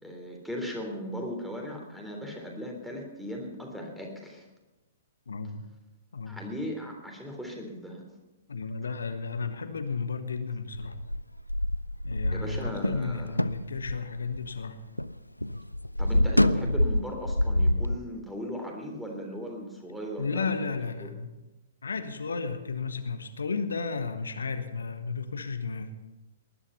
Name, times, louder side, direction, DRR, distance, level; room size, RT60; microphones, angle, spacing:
voice 1, 0.0-4.5 6.3-8.1 12.3-13.4 16.0-21.1, equal, ahead, 0 dB, 3.4 m, -38 dB
voice 2, 5.3-5.6 6.1-6.4 8.5-11.0 12.0-14.8 20.2-21.3 21.8-25.9, left 4 dB, 65° left, 9 dB, 1.4 m, -33 dB
sound 1, 10.7-15.1 15.4-17.9, left 1 dB, 85° left, 0.5 m, -27 dB
19.5 x 11.5 x 5.7 m, 1.1 s
figure-of-eight pair, 115°, 0 cm